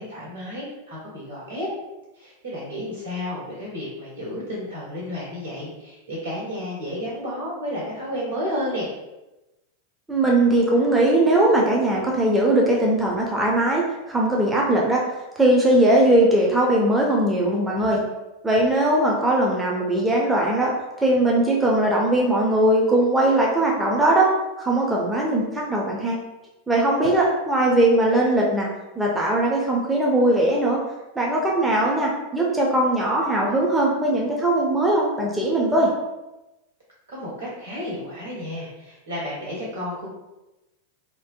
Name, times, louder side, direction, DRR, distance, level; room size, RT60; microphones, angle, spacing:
voice 1, 0.0-1.7 2.2-8.9 37.1-40.1, left 1 dB, 70° right, -7 dB, 1.2 m, -32 dB
voice 2, 10.1-15.0 15.4-18.0 18.4-20.7 21.0-24.3 24.6-26.2 26.7-28.7 29.0-30.8 31.2-35.9, right 1 dB, 5° right, -3 dB, 0.4 m, -20 dB
2.5 x 2.1 x 2.5 m, 1.0 s
figure-of-eight pair, 90°, 0 cm